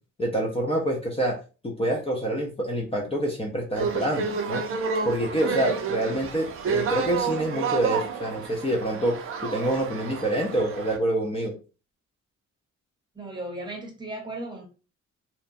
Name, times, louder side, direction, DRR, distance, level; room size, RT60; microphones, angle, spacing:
voice 1, 0.2-1.4 1.8-4.6 5.0-9.2 9.4-11.5, right 1 dB, 20° left, -1 dB, 0.5 m, -26 dB
sound 1, 3.7-11.0, right 5 dB, 45° right, 0.5 m, -30 dB
voice 2, 5.5-5.8 13.1-14.6, right 2 dB, 15° right, 1 dB, 0.8 m, -36 dB
2.8 x 2.2 x 2.5 m, 0.34 s
cardioid pair, 110°, 30 cm